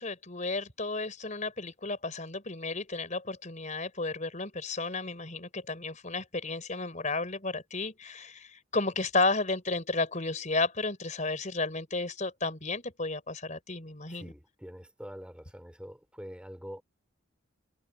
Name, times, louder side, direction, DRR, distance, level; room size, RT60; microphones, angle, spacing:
voice 1, 0.0-14.3, left 3 dB, 35° left, 4.5 m, -33 dB
voice 2, 14.1-16.8, equal, 5° right, 4.8 m, -45 dB
head